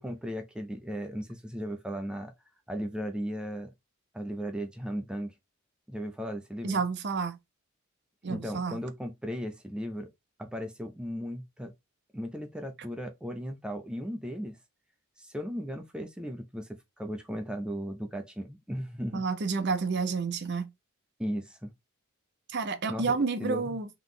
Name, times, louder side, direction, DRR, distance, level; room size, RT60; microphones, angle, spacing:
voice 1, 0.0-2.3 2.7-3.7 4.1-5.3 5.9-6.8 8.3-10.1 10.4-11.7 12.1-14.6 15.2-19.2 21.2-21.7 22.9-23.8, equal, 5° right, 0.5 m, -36 dB
voice 2, 6.6-7.4 8.2-8.8 19.1-20.7 22.5-23.9, right 4 dB, 50° right, 0.7 m, -30 dB
3.6 x 3.0 x 3.8 m
head